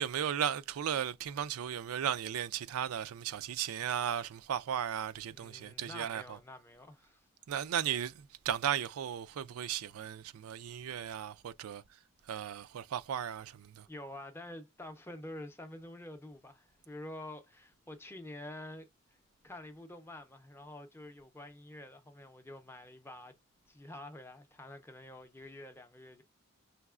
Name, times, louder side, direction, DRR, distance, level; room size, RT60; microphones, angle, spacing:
voice 1, 0.0-6.4 7.5-11.8 12.3-13.9, right 9 dB, 85° right, 0.4 m, -36 dB
voice 2, 5.3-7.2 13.9-19.2 19.4-23.3 23.7-26.2, left 1 dB, 10° left, 0.5 m, -48 dB
5.7 x 3.1 x 2.4 m
head